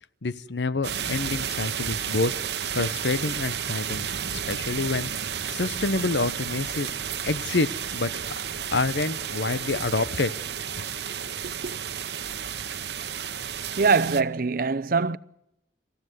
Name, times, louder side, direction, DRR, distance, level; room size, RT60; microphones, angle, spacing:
voice 1, 0.2-2.3 2.7-5.1 5.5-6.9 7.3-8.1 8.7-10.3, left 3 dB, 80° left, 0.9 m, -27 dB
sound 1, 0.8-14.2, right 8 dB, 70° right, 1.0 m, -32 dB
voice 2, 11.4-11.8 13.8-15.2, right 4 dB, 55° right, 0.7 m, -23 dB
27.5 x 15.0 x 8.1 m
head